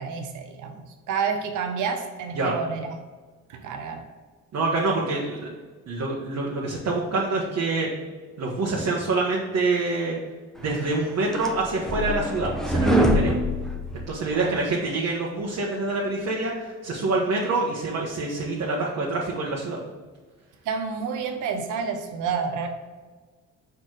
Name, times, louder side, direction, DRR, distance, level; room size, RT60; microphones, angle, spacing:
voice 1, 0.0-2.9 3.5-4.0 14.3-14.7 20.6-22.7, right 6 dB, 80° right, 5 dB, 0.9 m, -29 dB
voice 2, 4.5-5.5 5.9-7.9 8.4-10.2 10.6-13.3 14.1-19.8, right 3 dB, 60° right, -4 dB, 1.3 m, -26 dB
sound 1, 10.9-14.5, equal, ahead, 0.8 m, -24 dB
5.7 x 4.6 x 4.9 m, 1.4 s
cardioid pair, 90°, 30 cm